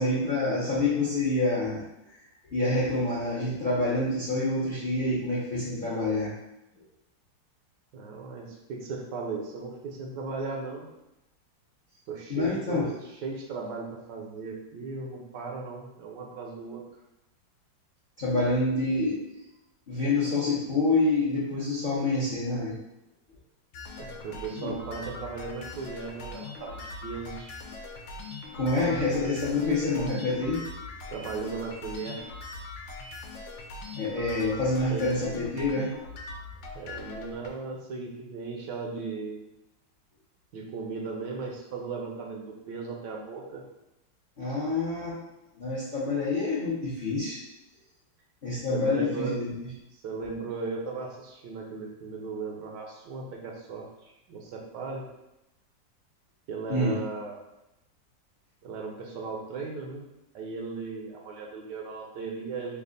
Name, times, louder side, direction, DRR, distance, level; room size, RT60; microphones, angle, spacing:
voice 1, 0.0-1.8 2.5-6.3 12.3-12.8 18.2-19.2 19.9-22.7 24.6-24.7 28.5-30.6 34.0-35.9 44.4-45.2 45.6-47.4 48.4-49.5 56.7-57.0, left 2 dB, 45° left, -8 dB, 0.6 m, -27 dB
voice 2, 7.9-10.9 12.1-16.9 24.0-27.5 31.1-32.2 34.9-35.1 36.7-39.4 40.5-43.6 48.7-49.4 49.9-55.1 56.5-57.4 58.6-60.1 60.3-62.8, right 4 dB, 75° right, 0 dB, 1.2 m, -37 dB
sound 1, 23.7-37.5, left 3 dB, 85° left, 1.3 m, -41 dB
3.3 x 2.3 x 3.7 m, 0.90 s
omnidirectional pair, 2.0 m